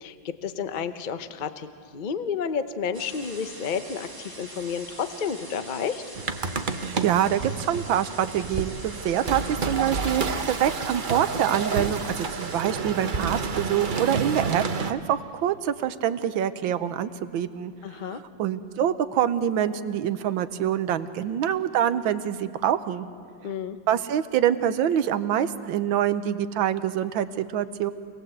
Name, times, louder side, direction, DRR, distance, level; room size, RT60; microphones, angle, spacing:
voice 1, 0.0-6.0 17.8-18.2 23.4-23.8, left 6 dB, 75° left, 10 dB, 0.4 m, -31 dB
sound 1, 2.9-12.6, right 1 dB, 10° right, 1.4 m, -43 dB
sound 2, 6.1-14.9, right 4 dB, 50° right, 0.6 m, -30 dB
voice 2, 6.7-17.7 18.1-23.1 23.9-27.9, right 10 dB, 75° right, 12 dB, 1.5 m, -25 dB
27.5 x 18.0 x 8.0 m, 2.2 s
omnidirectional pair, 2.3 m